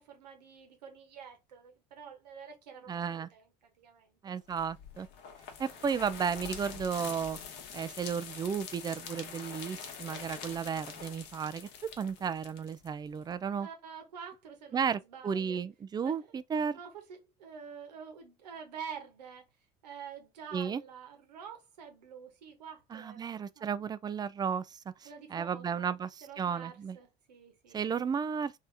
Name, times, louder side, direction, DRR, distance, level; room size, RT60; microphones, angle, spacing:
voice 1, 0.0-4.4 5.7-5.8 13.6-15.6 16.0-16.3 16.7-19.5 19.8-23.7 25.0-25.9 26.2-28.0, right 7 dB, 80° right, 1.0 m, -48 dB
voice 2, 2.9-3.3 4.2-5.1 5.6-7.4 7.7-11.7 12.0-13.7 14.7-16.8 20.5-20.8 22.9-27.0 27.7-28.6, right 6 dB, 20° right, 0.3 m, -34 dB
sound 1, 4.5-13.3, left 7 dB, 60° left, 1.0 m, -45 dB
3.3 x 2.7 x 3.3 m
hypercardioid pair, 65°, 21 cm